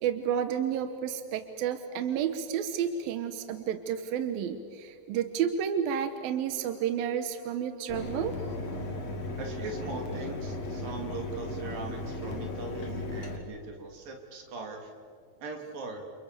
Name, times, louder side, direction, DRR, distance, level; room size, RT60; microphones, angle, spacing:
voice 1, 0.0-8.4, right 8 dB, 70° right, 9 dB, 2.3 m, -31 dB
Mechanisms, 7.9-13.4, left 2 dB, 40° left, 3.1 m, -36 dB
voice 2, 9.4-14.9 15.4-16.0, right 4 dB, 50° right, 3 dB, 4.3 m, -40 dB
29.5 x 29.5 x 6.8 m, 2.2 s
omnidirectional pair, 5.4 m